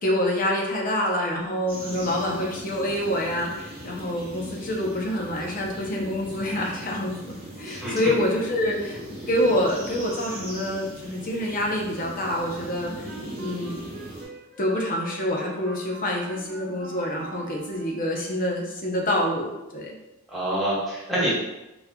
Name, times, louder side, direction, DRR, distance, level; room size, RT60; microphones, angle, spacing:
voice 1, 0.0-9.0 9.3-13.9 14.6-20.0, left 1 dB, 40° left, -1 dB, 0.7 m, -27 dB
sound 1, 1.7-14.2, equal, 25° right, 1.0 m, -39 dB
voice 2, 1.9-2.4 7.6-8.2 20.3-21.3, right 1 dB, ahead, -10 dB, 1.5 m, -28 dB
Wind instrument woodwind instrument, 12.2-18.1, right 3 dB, 55° right, 0.6 m, -44 dB
4.1 x 3.6 x 2.3 m, 0.97 s
head